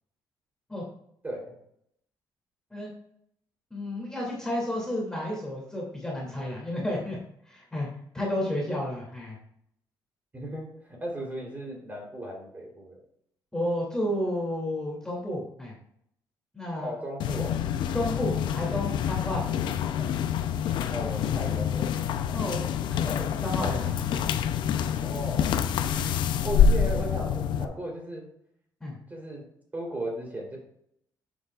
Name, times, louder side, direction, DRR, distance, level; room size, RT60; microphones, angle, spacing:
voice 1, 3.7-7.2 7.5-7.9 8.1-9.4 13.5-15.7 16.5-16.9 17.9-19.4 20.1-20.2 22.3-24.3 24.8-24.9 28.8-29.0, left 1 dB, 10° left, -4 dB, 2.6 m, -32 dB
voice 2, 10.3-13.0 16.8-17.5 20.0-20.1 20.9-21.9 22.3-22.4 23.0-23.2 23.6-23.7 25.0-25.6 26.4-28.2 29.1-29.4 29.7-30.6, right 1 dB, 20° right, -1 dB, 3.4 m, -36 dB
sound 1, 17.2-27.6, left 8 dB, 75° left, 0.6 m, -27 dB
10.5 x 7.2 x 2.4 m, 0.71 s
cardioid pair, 120°, 8 cm